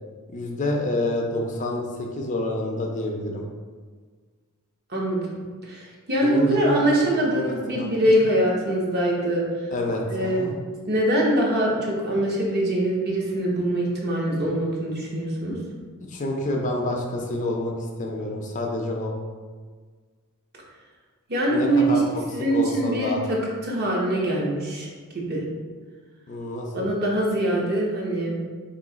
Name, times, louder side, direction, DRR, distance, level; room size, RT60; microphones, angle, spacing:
voice 1, 0.3-3.4 6.2-7.9 9.7-10.5 16.1-19.1 21.5-22.2 22.5-23.2 26.3-26.9, left 1 dB, 35° left, 0 dB, 0.4 m, -28 dB
voice 2, 4.9-5.2 5.6-9.4 10.1-10.5 10.9-15.6 21.3-22.0 22.3-23.4 23.6-24.9 25.1-25.4 26.7-28.4, right 1 dB, 45° right, -3 dB, 0.8 m, -23 dB
3.0 x 2.7 x 3.9 m, 1.5 s
head